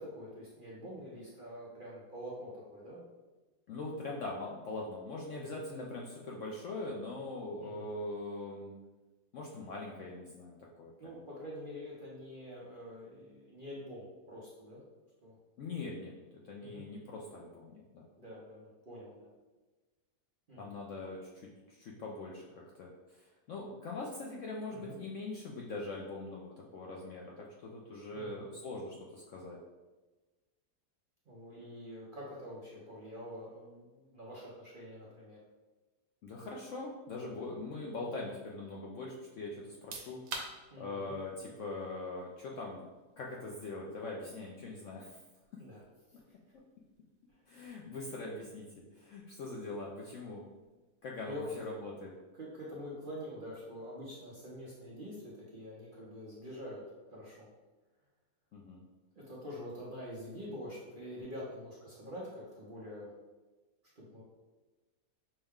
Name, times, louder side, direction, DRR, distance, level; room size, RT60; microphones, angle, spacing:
voice 1, 0.0-3.0 5.3-5.6 7.6-7.9 11.0-14.8 15.2-15.4 16.6-16.9 18.2-19.3 20.5-20.7 24.7-25.0 28.1-28.4 31.3-35.4 38.1-38.3 40.7-41.2 45.6-45.8 46.1-46.4 47.3-47.4 51.2-51.5 52.4-56.8 57.1-57.5 59.1-63.1 64.0-64.2, equal, 45° right, -6 dB, 0.7 m, -46 dB
voice 2, 3.7-8.7 9.3-11.2 15.6-16.1 16.4-18.1 20.6-22.5 22.7-29.6 36.2-40.2 40.8-42.8 43.2-45.2 47.5-48.7 48.9-50.4 51.0-52.1 58.5-58.8, left 2 dB, 70° left, -2 dB, 0.7 m, -42 dB
sound 1, 39.7-52.3, right 3 dB, 85° right, 1.2 m, -53 dB
5.5 x 2.2 x 3.5 m, 1.2 s
omnidirectional pair, 1.7 m